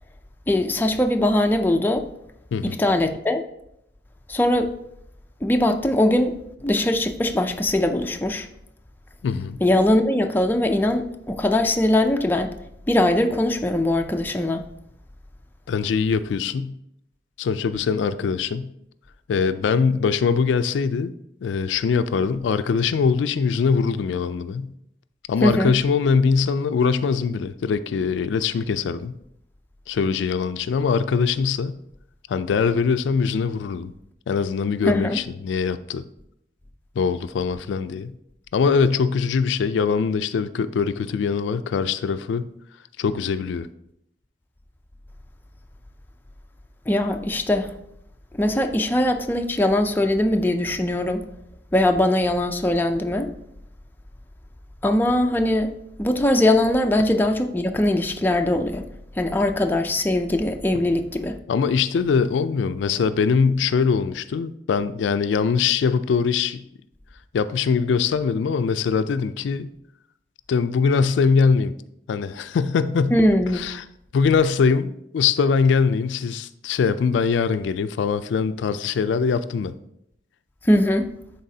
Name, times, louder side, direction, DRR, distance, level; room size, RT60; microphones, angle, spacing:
voice 1, 0.5-2.1 2.6-3.4 4.3-4.7 5.4-6.3 6.6-8.5 9.6-12.5 12.9-14.6 25.4-25.7 34.8-35.2 46.9-47.7 48.3-51.2 51.7-53.3 54.8-55.7 56.0-58.8 59.2-61.4 73.1-73.6 80.6-81.1, left 1 dB, 10° left, 0.4 m, -21 dB
voice 2, 9.2-9.6 15.7-16.7 17.4-18.7 19.3-21.1 21.4-24.7 25.3-29.1 29.9-31.7 32.3-33.9 34.3-36.0 37.0-38.1 38.5-42.5 43.0-43.7 61.5-66.6 67.3-69.7 70.5-71.7 72.1-73.1 73.5-73.8 74.1-79.7, left 5 dB, 85° left, 0.3 m, -22 dB
10.5 x 4.0 x 2.7 m
head